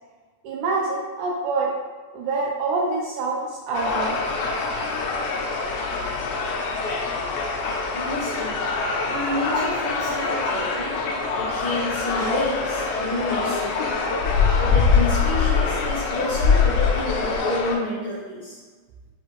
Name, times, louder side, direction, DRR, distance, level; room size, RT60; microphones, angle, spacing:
voice 1, 0.4-1.7 2.1-4.2 8.3-8.4, right 3 dB, 80° right, -2 dB, 1.9 m, -26 dB
sound 1, 3.7-17.8, left 4 dB, 85° left, 2.2 m, -24 dB
voice 2, 7.9-8.6 9.1-11.0 11.4-14.0 14.6-18.6, left 1 dB, 65° left, -8 dB, 1.2 m, -29 dB
6.4 x 2.5 x 3.1 m, 1.4 s
omnidirectional pair, 3.8 m